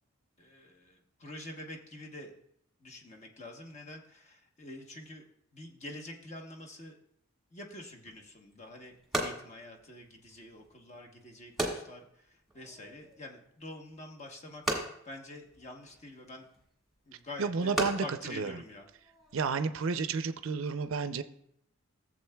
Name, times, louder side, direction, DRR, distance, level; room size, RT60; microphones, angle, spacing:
voice 1, 0.4-2.3 2.8-5.2 5.5-7.0 7.5-12.1 12.5-16.4 17.1-18.9, left 1 dB, 35° left, 1 dB, 1.1 m, -46 dB
sound 1, 8.1-19.4, right 1 dB, ahead, 1.5 m, -40 dB
voice 2, 17.4-18.6 19.3-21.2, right 5 dB, 70° right, 11 dB, 0.5 m, -31 dB
15.5 x 7.5 x 2.3 m, 0.72 s
head